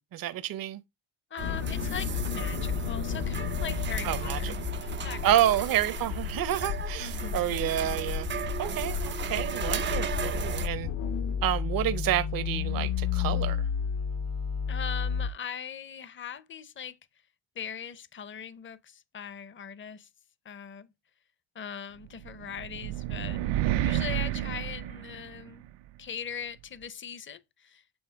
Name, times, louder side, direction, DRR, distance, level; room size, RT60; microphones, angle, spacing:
voice 1, 0.1-0.8 4.0-4.5 5.2-8.3 8.6-10.9 11.4-13.6, right 12 dB, 50° right, 0.7 m, -29 dB
voice 2, 1.3-5.4 7.0-7.6 14.7-17.0 17.6-20.1 20.4-20.9 21.5-23.4 23.7-25.6 26.0-27.8, left 7 dB, 25° left, 0.6 m, -40 dB
sound 1, 1.4-15.3, left 8 dB, 70° left, 1.0 m, -32 dB
sound 2, 1.4-10.7, right 7 dB, 30° right, 0.4 m, -36 dB
sound 3, 22.2-25.7, right 13 dB, 90° right, 0.7 m, -30 dB
8.0 x 3.3 x 4.5 m
cardioid pair, 95°, 45 cm